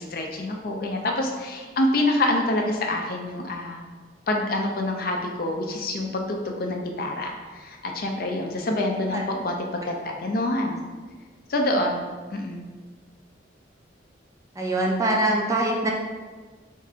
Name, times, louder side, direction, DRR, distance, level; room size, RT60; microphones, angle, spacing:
voice 1, 0.0-3.9 4.3-10.8 11.5-12.0 12.3-12.7, left 1 dB, 50° left, 2 dB, 0.5 m, -26 dB
voice 2, 14.6-15.9, right 1 dB, 15° right, -1 dB, 0.4 m, -23 dB
3.5 x 2.5 x 4.2 m, 1.4 s
head